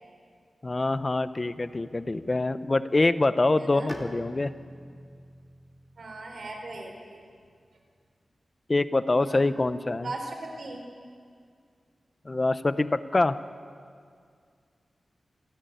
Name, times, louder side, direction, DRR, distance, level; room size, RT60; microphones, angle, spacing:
voice 1, 0.6-4.5 8.7-10.1 12.2-13.4, left 2 dB, 30° left, 13 dB, 0.7 m, -25 dB
voice 2, 3.6-3.9 6.0-7.2 9.2-9.6 10.0-10.8, right 2 dB, 70° right, 0 dB, 4.2 m, -39 dB
Bowed string instrument, 3.9-7.5, equal, 10° left, 2.1 m, -45 dB
28.0 x 11.0 x 9.3 m, 2.2 s
wide cardioid pair, 120°, 0 cm